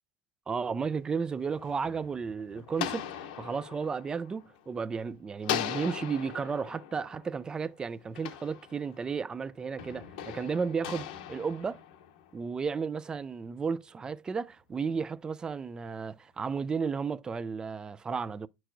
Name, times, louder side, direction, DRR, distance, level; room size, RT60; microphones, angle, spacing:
voice 1, 0.5-11.8 12.3-18.5, right 5 dB, 20° right, 0.3 m, -33 dB
sound 1, 1.3-5.0 5.4-9.2 9.8-12.4, left 10 dB, 75° left, 0.9 m, -39 dB
8.8 x 4.6 x 2.6 m
supercardioid pair, 115°, 4 cm